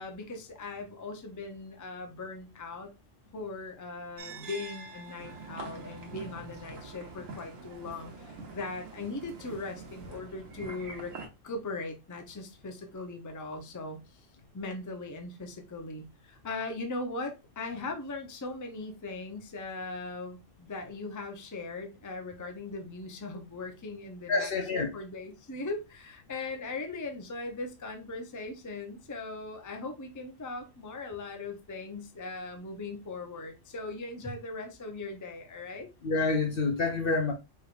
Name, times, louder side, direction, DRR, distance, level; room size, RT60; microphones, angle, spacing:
voice 1, 0.0-2.9 3.3-11.1 11.4-14.3 14.5-35.9, left 3 dB, 20° left, 0.5 m, -39 dB
sound 1, 4.2-10.2, right 4 dB, 55° right, 1.0 m, -50 dB
sound 2, 5.2-11.3, right 3 dB, 80° right, 1.4 m, -45 dB
voice 2, 24.3-24.9 36.0-37.3, left 3 dB, 55° left, 0.7 m, -27 dB
4.7 x 3.2 x 2.5 m
omnidirectional pair, 1.3 m